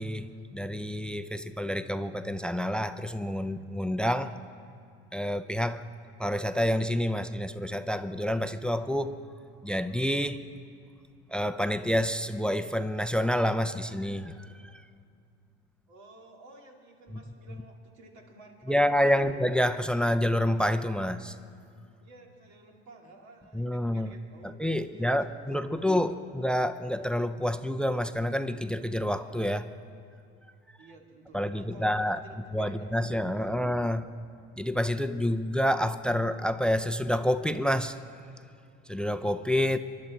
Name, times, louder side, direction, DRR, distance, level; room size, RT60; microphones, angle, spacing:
voice 1, 0.0-4.3 5.1-5.8 6.2-9.2 9.6-10.5 11.3-14.8 18.7-21.3 23.5-24.1 24.4-29.7 31.3-32.2 32.5-34.1 34.6-38.0 38.9-39.8, equal, 5° left, 0.5 m, -28 dB
voice 2, 15.9-19.3 22.0-26.3 30.8-33.6, right 2 dB, 65° right, 2.5 m, -53 dB
23.5 x 11.5 x 4.3 m
supercardioid pair, 90°, 30 cm